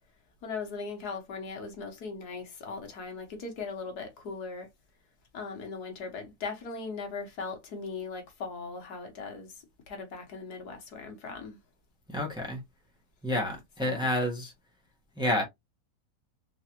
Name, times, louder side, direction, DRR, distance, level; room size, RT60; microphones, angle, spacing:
voice 1, 0.4-4.7 5.3-11.6 13.8-14.1, left 4 dB, 75° left, 1.7 m, -39 dB
voice 2, 12.1-12.6 13.2-14.5 15.2-15.4, left 1 dB, 5° right, 1.1 m, -29 dB
3.9 x 3.3 x 2.9 m
omnidirectional pair, 1.7 m